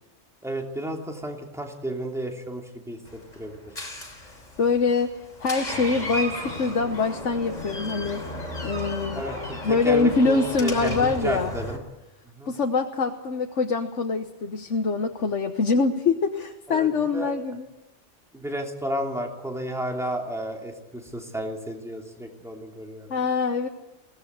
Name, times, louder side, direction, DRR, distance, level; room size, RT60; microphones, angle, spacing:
voice 1, 0.4-3.0 3.4-3.7 9.1-9.4 9.6-11.8 12.4-12.5 16.7-17.3 18.3-23.1, right 1 dB, ahead, 1 dB, 2.9 m, -32 dB
Door, 3.1-11.8, left 1 dB, 35° left, 3.7 m, -35 dB
voice 2, 4.6-5.1 5.4-8.2 8.6-9.2 9.6-11.5 12.5-17.7 23.1-23.7, left 4 dB, 75° left, 5 dB, 1.5 m, -24 dB
22.0 x 18.0 x 8.2 m, 0.97 s
omnidirectional pair, 1.2 m